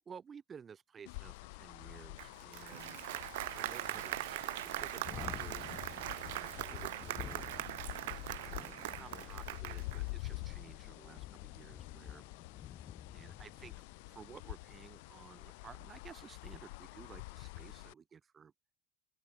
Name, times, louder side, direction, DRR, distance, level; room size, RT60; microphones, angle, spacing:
voice 1, 0.0-3.0 3.5-5.7 6.1-7.5 8.3-12.2 13.1-13.7 14.1-18.5, right 6 dB, 20° right, 5.0 m, -54 dB
sound 1, 1.1-17.9, left 26 dB, 75° left, 7.4 m, -48 dB
Applause, 2.2-10.1, right 19 dB, 85° right, 1.3 m, -41 dB
Thunderstorm, 2.4-16.1, left 10 dB, 30° left, 1.9 m, -53 dB
open air
supercardioid pair, 145°, 0 cm